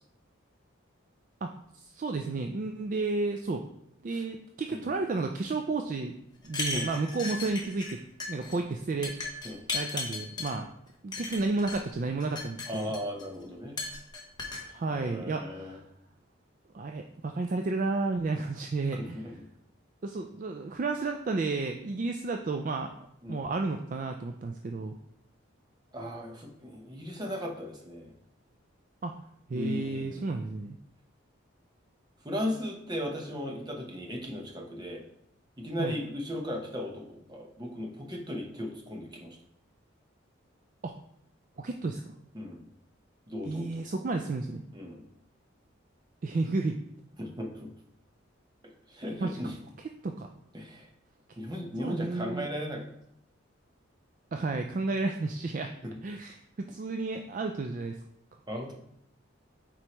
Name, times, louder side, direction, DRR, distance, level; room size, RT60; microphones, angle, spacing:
voice 1, 1.4-3.7 4.0-6.1 6.4-8.0 8.3-9.1 9.7-10.7 11.0-12.9 14.6-15.8 16.7-19.2 20.0-22.9 23.3-25.0 29.0-29.1 29.5-30.8 35.8-35.9 40.8-40.9 41.6-42.1 43.4-44.6 46.2-46.8 49.2-49.4 50.0-50.3 51.8-52.5 54.3-55.7 56.0-58.0, right 3 dB, 40° right, 4 dB, 0.3 m, -32 dB
sound 1, 6.4-7.9 8.2-8.6 9.0-10.5 11.1-11.8 12.2-13.2 13.8-14.6, left 3 dB, 20° left, 0.9 m, -35 dB
voice 2, 12.7-13.8 14.9-15.8 18.9-19.4 23.2-23.4 25.9-28.1 29.5-30.2 32.2-35.0 35.6-39.4 42.3-42.6 43.3-43.8 44.7-45.0 47.2-47.7 48.9-49.5 50.5-50.9 51.4-52.9 55.8-56.0 58.5-58.7, left 1 dB, 20° right, 1 dB, 0.9 m, -37 dB
7.6 x 4.5 x 3.0 m, 0.74 s
head